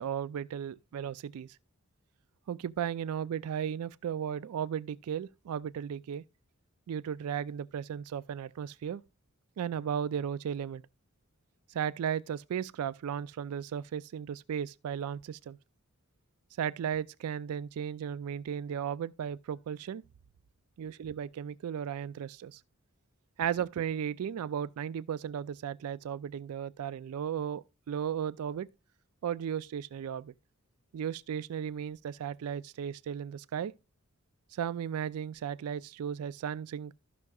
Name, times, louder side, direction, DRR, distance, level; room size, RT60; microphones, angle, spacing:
voice 1, 0.0-1.6 2.5-6.2 6.9-9.0 9.6-10.8 11.7-15.6 16.6-20.0 20.8-22.6 23.4-28.7 29.2-30.3 30.9-33.7 34.5-36.9, right 8 dB, 90° right, 0.3 m, -35 dB
14.5 x 5.9 x 2.3 m
head